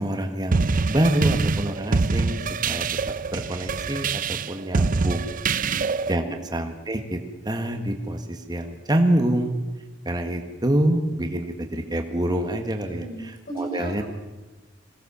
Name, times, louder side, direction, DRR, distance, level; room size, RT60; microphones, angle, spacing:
voice 1, 0.0-2.4 2.7-2.8 3.3-5.3 6.1-7.2 7.4-9.6 10.0-13.0 13.6-14.0, right 1 dB, 20° right, 5 dB, 1.6 m, -26 dB
sound 1, 0.5-6.2, right 4 dB, 45° right, 0.6 m, -25 dB
voice 2, 12.8-14.0, right 2 dB, 50° left, 1 dB, 6.8 m, -36 dB
22.0 x 17.0 x 7.0 m, 1.2 s
head